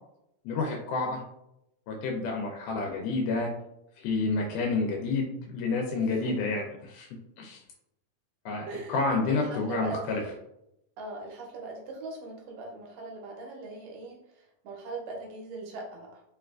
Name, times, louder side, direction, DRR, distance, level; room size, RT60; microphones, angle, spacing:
voice 1, 0.5-1.2 1.9-3.5 4.0-7.1 7.4-7.6 8.5-10.2, left 3 dB, 85° left, 0 dB, 2.1 m, -29 dB
voice 2, 5.9-6.6 8.7-10.3 11.0-16.2, right 3 dB, 70° right, -1 dB, 1.7 m, -40 dB
4.8 x 2.3 x 2.3 m, 0.82 s
omnidirectional pair, 3.6 m